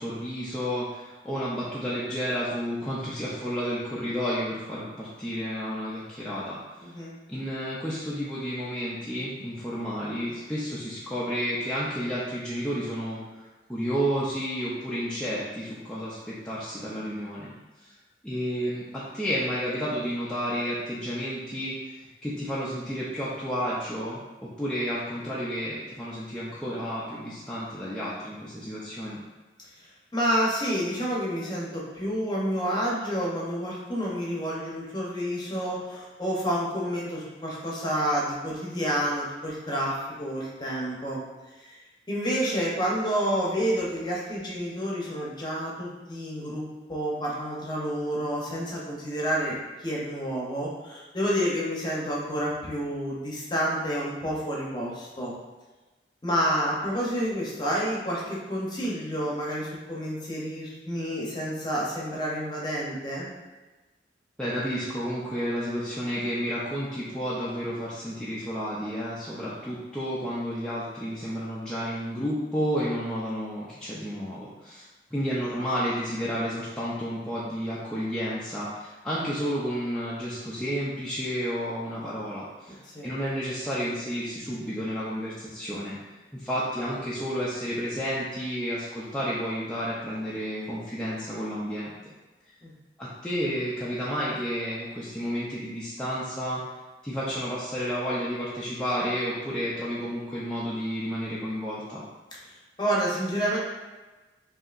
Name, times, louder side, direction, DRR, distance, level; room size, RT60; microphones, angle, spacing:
voice 1, 0.0-6.9 7.3-17.5 17.8-17.9 18.2-29.2 64.4-74.8 75.1-86.0 86.3-91.9 93.0-96.6 97.0-102.0, equal, 5° left, -9 dB, 0.5 m, -31 dB
voice 2, 6.8-7.1 30.1-41.2 41.5-41.8 42.1-55.3 56.2-63.3 82.7-83.1 92.6-92.7 102.5-103.6, equal, 25° left, -4 dB, 0.9 m, -29 dB
5.4 x 2.8 x 2.5 m, 1.2 s
head